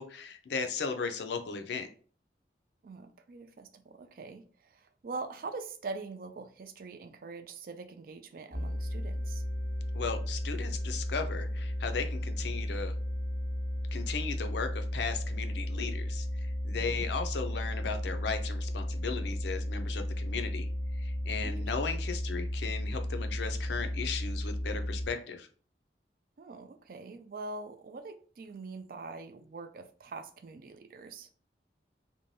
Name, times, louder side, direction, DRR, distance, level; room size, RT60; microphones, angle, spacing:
voice 1, 0.0-1.9 9.9-12.9 13.9-25.5, left 5 dB, 75° left, 0.4 m, -36 dB
voice 2, 2.8-9.4 16.8-17.2 21.4-21.7 26.4-31.3, right 3 dB, 50° right, 0.3 m, -43 dB
sound 1, 8.5-25.1, equal, 5° left, 0.7 m, -34 dB
2.6 x 2.2 x 3.1 m
head